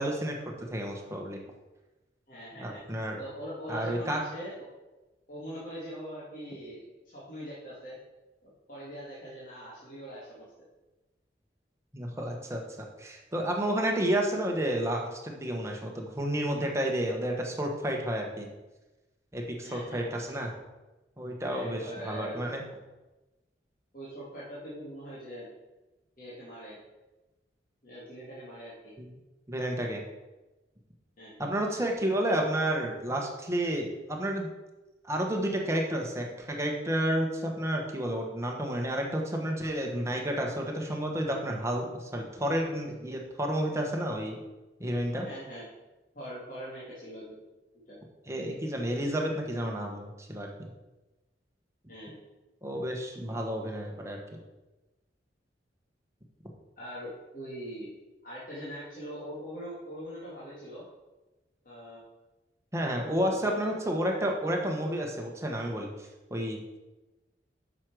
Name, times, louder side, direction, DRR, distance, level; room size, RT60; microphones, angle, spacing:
voice 1, 0.0-1.4 2.6-3.2 3.7-4.2 11.9-12.6 13.0-18.5 19.3-20.5 21.2-22.6 29.0-29.1 29.5-30.0 31.4-34.5 35.0-44.3 44.8-45.3 48.3-50.7 52.6-54.2 62.7-65.9 66.3-66.6, right 1 dB, 15° right, 1 dB, 1.2 m, -31 dB
voice 2, 2.3-2.8 3.2-4.6 5.3-8.0 8.4-10.5 19.6-20.1 21.5-22.5 23.9-25.5 26.2-26.8 27.8-29.0 31.2-31.7 45.2-45.6 46.1-47.4 47.9-48.0 51.9-52.2 56.8-57.9 58.2-60.8 61.6-62.0 62.8-63.8, equal, 50° left, -9 dB, 2.5 m, -42 dB
8.5 x 6.3 x 4.8 m, 1.1 s
head